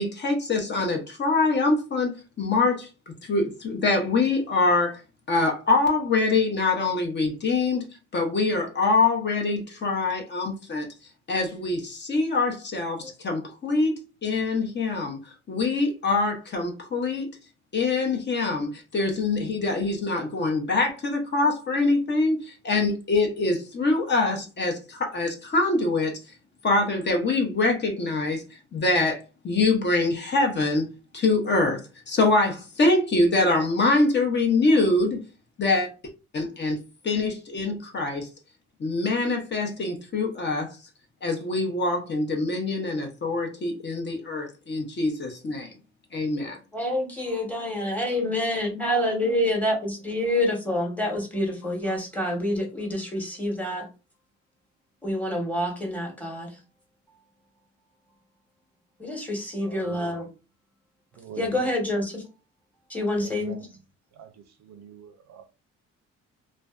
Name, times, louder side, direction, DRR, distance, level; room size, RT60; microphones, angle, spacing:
voice 1, 0.0-2.1 2.4-2.9 3.3-5.0 5.3-7.9 8.1-10.9 11.3-15.2 15.5-17.3 17.7-26.1 26.6-28.4 28.7-30.9 31.1-31.8 32.1-35.2 35.6-35.9 36.3-38.3 38.8-40.8 41.2-45.7 46.1-46.6, left 3 dB, 35° left, 0.6 m, -24 dB
voice 2, 46.7-53.9 55.0-56.5 59.0-60.3 61.4-62.2 62.9-63.5, left 1 dB, 5° left, 1.0 m, -27 dB
voice 3, 59.6-60.2 61.2-61.7 63.2-63.7 64.2-65.5, right 8 dB, 65° right, 0.5 m, -43 dB
2.5 x 2.1 x 2.3 m
cardioid pair, 90°, 30 cm